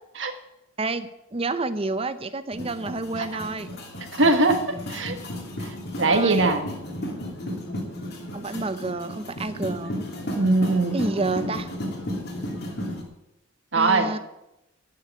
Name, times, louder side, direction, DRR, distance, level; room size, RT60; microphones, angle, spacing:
voice 1, 0.8-3.7 6.1-6.5 8.3-9.9 10.9-11.7 13.7-14.2, right 3 dB, 30° right, 12 dB, 0.6 m, -29 dB
sound 1, 2.5-13.0, left 1 dB, 50° left, 2.7 m, -34 dB
voice 2, 4.2-4.6 4.9-5.1 5.6-6.7 10.4-11.0 13.7-14.1, right 2 dB, 60° right, 7 dB, 1.5 m, -21 dB
11.5 x 6.7 x 9.4 m, 0.90 s
head